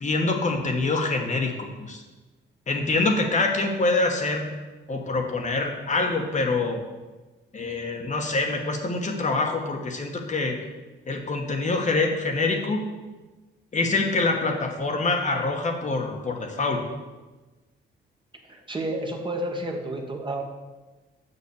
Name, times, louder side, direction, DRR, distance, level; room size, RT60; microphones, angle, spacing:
voice 1, 0.0-1.5 1.9-2.0 2.7-4.5 4.9-6.8 7.5-10.6 11.1-12.8 13.7-16.8, left 3 dB, 40° left, 2 dB, 1.3 m, -25 dB
voice 2, 18.5-20.4, right 1 dB, 25° right, 2 dB, 1.5 m, -30 dB
6.9 x 6.2 x 7.1 m, 1.2 s
cardioid pair, 90°, 20 cm